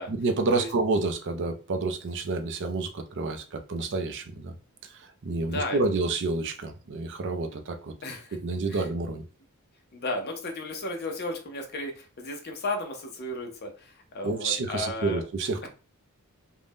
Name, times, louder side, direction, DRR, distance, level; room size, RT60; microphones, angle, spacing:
voice 1, 0.1-4.5 4.8-7.9 8.3-9.2 14.2-15.7, right 3 dB, 55° right, 6 dB, 0.5 m, -29 dB
voice 2, 9.9-15.2 15.6-15.7, left 2 dB, 45° left, 3 dB, 0.7 m, -34 dB
2.5 x 2.1 x 3.4 m, 0.36 s
head